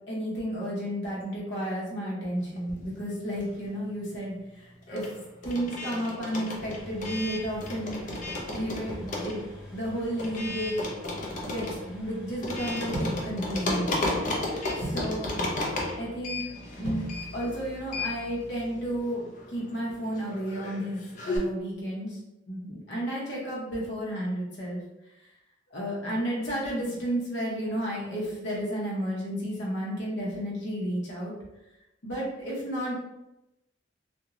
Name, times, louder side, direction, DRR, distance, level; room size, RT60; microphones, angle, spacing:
voice 1, 0.1-5.1 5.4-8.0 8.5-10.9 11.4-14.0 14.8-15.4 15.9-16.4 16.8-17.0 17.3-19.2 19.5-22.2 22.5-24.8 25.7-31.3 32.0-32.9, equal, 70° left, -5 dB, 0.8 m, -32 dB
sound 1, 2.6-3.8 4.1-21.4, left 2 dB, 45° left, 0.5 m, -34 dB
sound 2, 6.5-13.2, left 1 dB, 5° right, 0.6 m, -47 dB
sound 3, 12.9-19.0, right 1 dB, 55° right, 0.6 m, -39 dB
2.4 x 2.1 x 2.9 m, 0.93 s
head